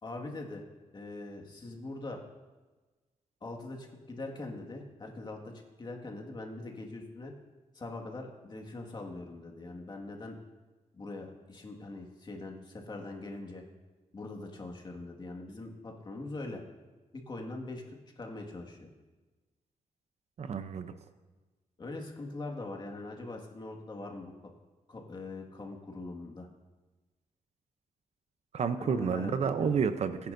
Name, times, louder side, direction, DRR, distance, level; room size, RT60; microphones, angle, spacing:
voice 1, 0.0-0.6 0.9-2.2 3.4-5.5 5.8-7.3 7.7-10.4 11.0-13.6 14.1-16.6 17.1-18.9 21.8-24.3 24.9-26.5 28.8-29.7, left 2 dB, 35° left, 1 dB, 1.9 m, -42 dB
voice 2, 20.4-20.9 28.5-30.3, right 6 dB, 55° right, 10 dB, 0.7 m, -30 dB
21.0 x 10.0 x 2.7 m, 1.2 s
wide cardioid pair, 120°, 13 cm